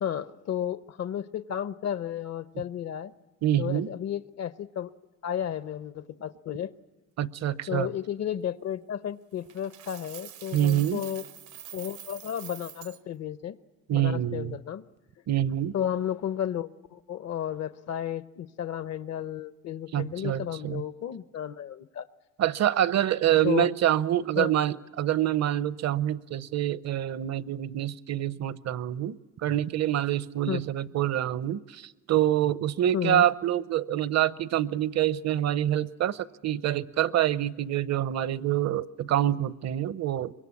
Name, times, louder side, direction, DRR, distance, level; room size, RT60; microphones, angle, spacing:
voice 1, 0.0-3.1 3.6-4.9 5.2-6.7 7.7-11.2 11.7-13.5 13.9-14.8 15.7-22.1 23.4-23.7 24.4-24.5 30.5-30.6 32.9-33.3, left 10 dB, 60° left, 15 dB, 0.8 m, -33 dB
voice 2, 3.4-3.9 7.2-7.9 10.5-11.0 13.9-14.6 15.3-15.7 19.9-20.8 22.4-40.3, right 12 dB, 60° right, 17 dB, 0.7 m, -26 dB
Coin (dropping), 9.5-13.0, right 10 dB, 85° right, 1.0 m, -45 dB
24.0 x 22.0 x 8.4 m, 1.2 s
cardioid pair, 90°, 30 cm